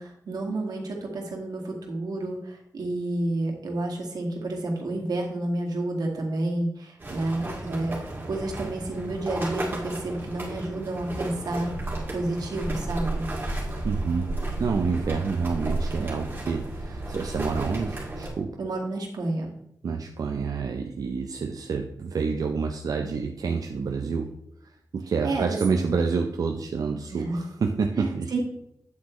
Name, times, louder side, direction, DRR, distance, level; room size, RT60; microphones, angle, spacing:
voice 1, 0.0-11.7 12.1-13.3 18.6-19.5 25.2-25.6 27.1-27.4 28.0-28.4, right 2 dB, 85° right, 1 dB, 2.1 m, -30 dB
sound 1, 7.0-18.3, right 2 dB, 30° right, 2.5 m, -33 dB
voice 2, 13.8-18.6 19.8-24.3 24.6-28.3, right 5 dB, 70° right, 4 dB, 0.7 m, -28 dB
8.6 x 8.2 x 3.2 m, 0.79 s
wide cardioid pair, 165°, 6 cm